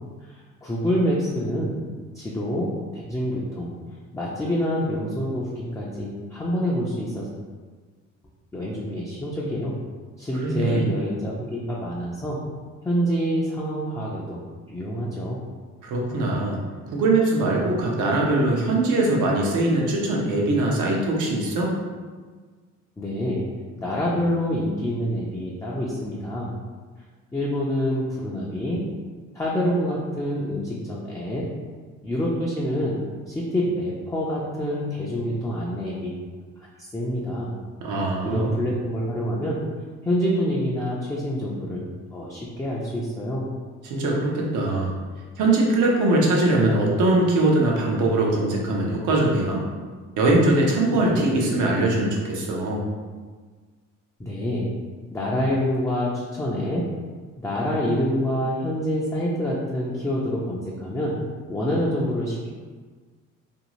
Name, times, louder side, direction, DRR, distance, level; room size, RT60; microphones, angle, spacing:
voice 1, 0.2-1.8 2.1-3.7 4.1-7.3 8.5-9.8 10.2-12.4 12.8-14.4 14.7-15.4 23.0-23.4 23.8-26.5 27.3-28.9 29.3-31.5 32.0-33.0 33.3-36.2 36.8-37.5 38.2-39.6 40.0-43.5 50.9-51.3 54.2-54.7 55.1-56.9 57.4-61.2 61.5-62.5, equal, 10° left, -5 dB, 0.4 m, -26 dB
voice 2, 10.4-10.8 15.8-16.6 16.9-21.7 37.8-38.6 43.8-44.9 45.4-49.6 50.2-52.8, right 2 dB, 80° right, -2 dB, 0.7 m, -21 dB
2.6 x 2.4 x 2.9 m, 1.5 s
cardioid pair, 90°, 30 cm